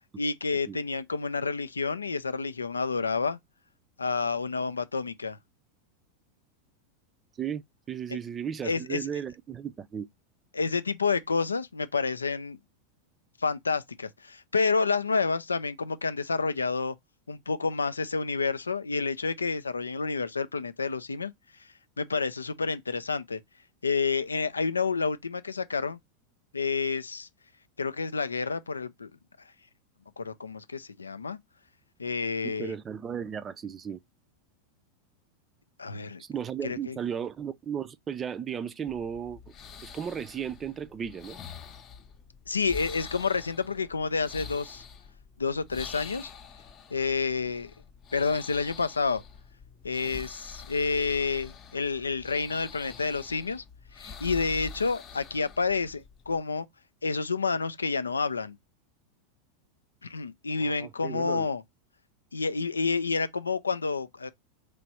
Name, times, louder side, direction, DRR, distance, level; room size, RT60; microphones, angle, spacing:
voice 1, 0.2-3.4 4.0-5.4 8.1-8.2 8.6-9.0 10.5-12.6 13.4-16.9 17.3-21.3 22.0-23.4 23.8-26.0 26.5-27.3 27.8-29.1 30.2-31.4 32.0-32.7 35.8-36.2 36.6-37.0 42.5-44.8 45.4-46.3 46.9-47.7 48.1-49.2 49.8-53.6 54.0-56.7 57.0-58.6 60.0-61.6 62.3-64.3, left 4 dB, 85° left, 0.3 m, -29 dB
voice 2, 7.9-10.1 32.4-34.0 36.2-39.4 39.8-41.4 60.6-61.5, right 8 dB, 25° right, 0.4 m, -35 dB
sound 1, 38.9-56.4, left 6 dB, 35° left, 0.7 m, -46 dB
3.1 x 2.5 x 4.2 m
hypercardioid pair, 90°, 0 cm